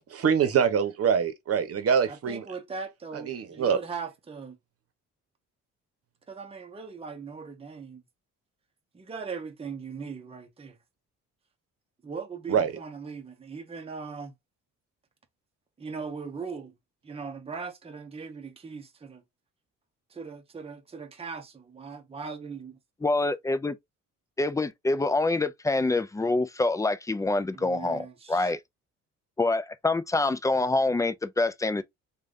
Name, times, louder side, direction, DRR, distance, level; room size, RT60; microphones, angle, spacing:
voice 1, 0.2-2.4 3.2-3.8 12.5-12.7, right 7 dB, 50° right, 0.9 m, -24 dB
voice 2, 2.1-4.6 6.3-8.0 8.9-10.8 12.0-14.3 15.8-16.7 17.0-19.2 20.1-22.8 27.5-28.5, right 5 dB, 20° right, 0.8 m, -39 dB
voice 3, 23.0-23.8 24.4-28.6 29.4-31.8, left 2 dB, 10° left, 0.4 m, -26 dB
3.2 x 2.4 x 2.5 m
cardioid pair, 90°, 30 cm